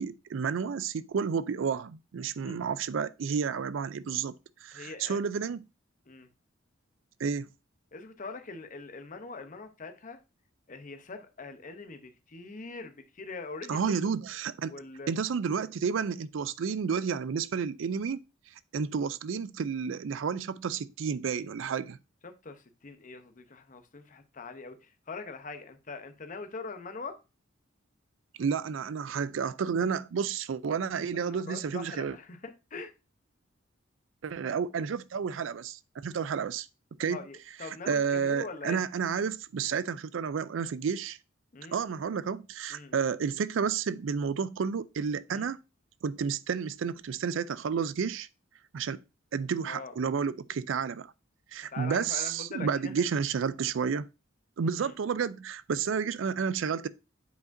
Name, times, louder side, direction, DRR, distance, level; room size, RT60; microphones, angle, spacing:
voice 1, 0.0-4.3 4.6-5.6 7.2-7.5 13.7-14.7 15.1-18.2 18.7-22.0 28.4-32.2 34.2-36.7 37.0-37.2 37.9-41.2 41.7-45.6 46.0-48.3 48.7-49.0 49.3-51.1 51.5-54.1 54.6-56.9, right 6 dB, 70° right, 0.4 m, -31 dB
voice 2, 4.7-5.2 6.1-6.3 7.9-10.2 10.7-14.0 14.7-15.1 22.2-27.2 31.3-32.9 37.0-38.8 41.5-41.8 42.7-43.0 45.3-45.5 49.6-49.9 51.7-53.0 54.7-54.9, left 3 dB, 40° left, 0.8 m, -42 dB
8.1 x 4.9 x 2.6 m
head